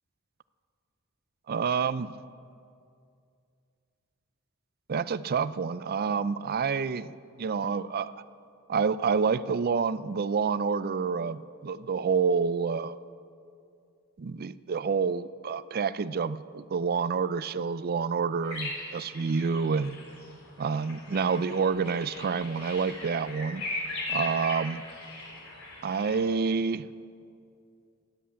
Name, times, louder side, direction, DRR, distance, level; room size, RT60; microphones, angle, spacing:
voice 1, 1.5-2.1 4.9-8.1 8.7-13.0 14.2-20.0 20.6-23.6 24.1-24.8 25.8-26.9, right 5 dB, 45° right, 16 dB, 0.4 m, -28 dB
sound 1, 18.4-26.2, left 2 dB, 70° left, 4.6 m, -39 dB
16.0 x 11.0 x 8.4 m, 2.4 s
head